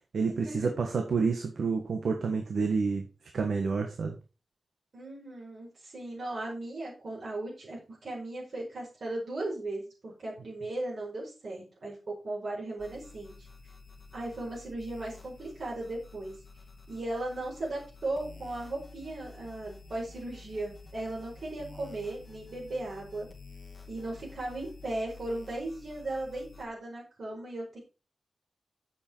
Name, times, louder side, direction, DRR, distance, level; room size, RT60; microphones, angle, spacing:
voice 1, 0.1-3.0 3.3-4.2, right 5 dB, 80° right, 4 dB, 1.6 m, -29 dB
voice 2, 4.9-13.5 14.1-16.3 16.9-23.3 23.9-27.8, right 2 dB, 55° right, -4 dB, 5.0 m, -37 dB
sound 1, 12.8-26.6, left 4 dB, 20° left, 2.1 m, -50 dB
9.1 x 7.8 x 4.6 m, 0.32 s
wide cardioid pair, 175°, 0 cm